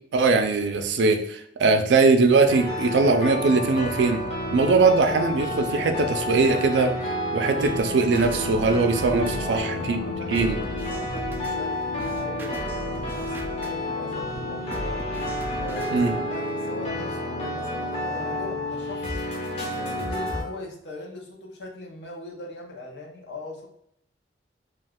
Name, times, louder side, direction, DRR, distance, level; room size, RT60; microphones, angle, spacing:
voice 1, 0.1-4.2 4.5-6.9 7.3-10.0 10.3-10.6 15.9-16.1, right 3 dB, 85° right, 7 dB, 0.4 m, -21 dB
sound 1, 2.5-20.4, left 1 dB, 35° left, 0.7 m, -30 dB
sound 2, 7.6-16.3, equal, 10° right, 0.3 m, -38 dB
voice 2, 9.3-15.0 15.5-19.2 19.7-23.7, left 1 dB, 75° left, -1 dB, 0.7 m, -40 dB
2.4 x 2.3 x 3.4 m, 0.72 s
head